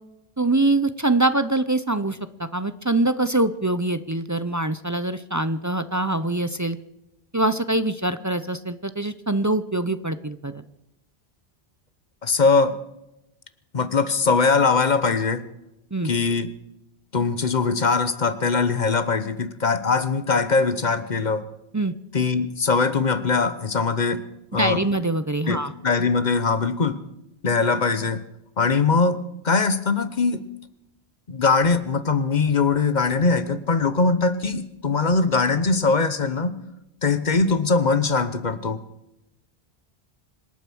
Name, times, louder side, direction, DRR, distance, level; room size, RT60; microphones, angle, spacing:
voice 1, 0.4-6.8 7.3-10.6 15.9-16.1 21.7-21.9 24.5-25.7, right 2 dB, 25° right, 12 dB, 0.4 m, -24 dB
voice 2, 12.2-12.7 13.7-15.4 16.0-16.5 17.1-21.4 22.1-24.2 24.5-24.8 25.5-27.0 27.4-28.2 28.6-29.2 29.4-30.4 31.3-36.6 37.0-38.8, left 4 dB, 45° left, 12 dB, 1.1 m, -21 dB
26.0 x 9.0 x 6.2 m, 0.89 s
omnidirectional pair, 1.1 m